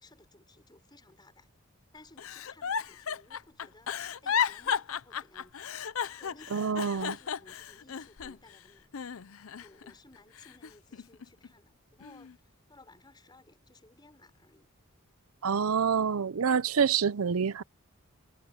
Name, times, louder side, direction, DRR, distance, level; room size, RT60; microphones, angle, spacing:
voice 1, 0.0-1.5 1.9-5.7 6.2-9.1 9.6-14.7, left 2 dB, 20° left, 5.2 m, -58 dB
Giggle, 2.2-8.6 8.9-9.9 10.4-11.5 12.0-12.3, left 8 dB, 65° left, 0.6 m, -34 dB
voice 2, 6.5-7.2 15.4-17.6, right 6 dB, 75° right, 0.6 m, -27 dB
head